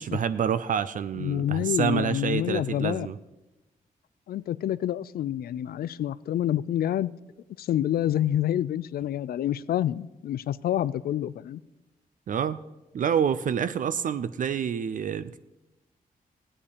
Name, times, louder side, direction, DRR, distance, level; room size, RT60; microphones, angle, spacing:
voice 1, 0.0-3.2 12.3-12.6 12.9-15.4, right 8 dB, 60° right, 14 dB, 0.5 m, -27 dB
voice 2, 1.2-3.1 4.3-7.1 7.6-11.6, left 11 dB, 80° left, 18 dB, 0.4 m, -27 dB
15.5 x 8.7 x 5.0 m, 1.0 s
wide cardioid pair, 110°, 15 cm